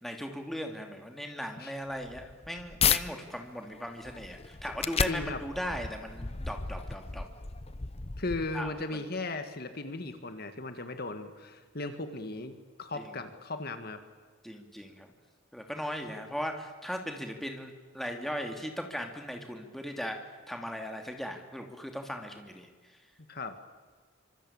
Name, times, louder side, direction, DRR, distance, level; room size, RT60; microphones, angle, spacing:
voice 1, 0.0-7.2 8.5-9.0 12.9-13.1 14.4-15.1 15.5-23.0, equal, ahead, 4 dB, 2.8 m, -38 dB
sound 1, 2.0-3.0 3.6-8.8, left 6 dB, 30° left, 0.8 m, -33 dB
voice 2, 5.1-5.4 8.2-12.5 12.8-14.0 23.3-23.6, left 2 dB, 50° left, 8 dB, 1.9 m, -37 dB
26.5 x 25.5 x 8.8 m, 1.5 s
head